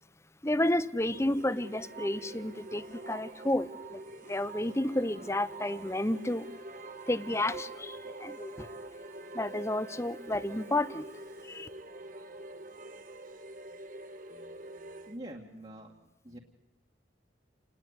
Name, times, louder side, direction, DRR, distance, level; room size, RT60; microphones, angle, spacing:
voice 1, 0.4-4.0 4.3-6.5 7.1-8.7 9.3-11.1 11.4-11.7, left 1 dB, 15° left, 0.9 m, -31 dB
sound 1, 1.0-15.2, right 2 dB, 45° right, 1.7 m, -45 dB
voice 2, 14.3-15.9 16.2-16.4, right 1 dB, 30° right, 2.2 m, -47 dB
29.5 x 19.5 x 9.9 m
head